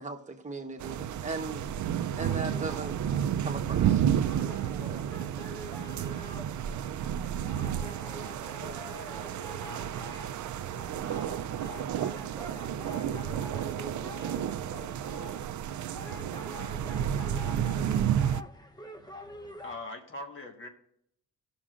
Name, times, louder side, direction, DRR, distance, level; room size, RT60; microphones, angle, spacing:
voice 1, 0.0-1.7 2.2-3.0 3.4-4.0, right 3 dB, 25° right, 3 dB, 1.1 m, -37 dB
sound 1, 0.8-18.4, right 10 dB, 70° right, 0.5 m, -31 dB
sound 2, 2.2-19.8, left 2 dB, 15° left, 0.7 m, -47 dB
voice 2, 4.7-7.6 8.6-11.7 12.6-15.5 16.2-16.6 16.9-18.0, left 4 dB, 65° left, -1 dB, 2.8 m, -53 dB
voice 3, 19.6-20.7, left 2 dB, 40° left, 3 dB, 1.5 m, -41 dB
18.5 x 6.2 x 2.5 m, 0.72 s
wide cardioid pair, 145°, 31 cm